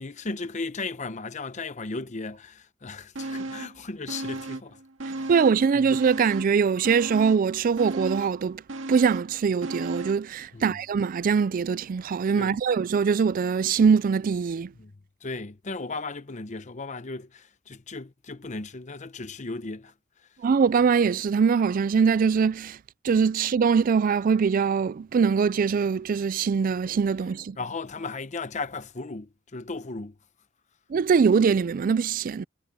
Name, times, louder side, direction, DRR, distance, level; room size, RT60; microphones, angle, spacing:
voice 1, 0.0-4.8 5.0-5.3 10.5-10.8 12.4-12.6 14.8-14.9 15.2-19.9 27.6-30.1, left 3 dB, 40° left, 0.8 m, -36 dB
sound 1, 3.2-3.8 4.1-5.6 5.9-10.3 10.6-10.7, right 2 dB, 70° right, 2.1 m, -35 dB
voice 2, 5.3-8.6 8.9-14.7 20.4-22.8 23.0-27.6 30.9-32.4, right 6 dB, 45° right, 0.3 m, -22 dB
head